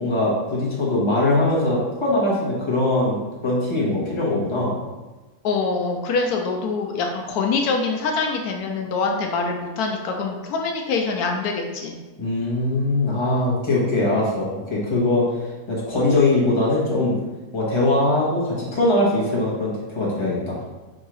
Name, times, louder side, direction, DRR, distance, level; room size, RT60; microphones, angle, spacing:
voice 1, 0.0-4.8 12.2-15.2 15.7-17.2 17.5-20.7, left 2 dB, 20° left, -6 dB, 1.1 m, -21 dB
voice 2, 5.4-11.9, left 4 dB, 85° left, 2 dB, 1.1 m, -24 dB
3.8 x 2.7 x 4.6 m, 1.2 s
omnidirectional pair, 1.6 m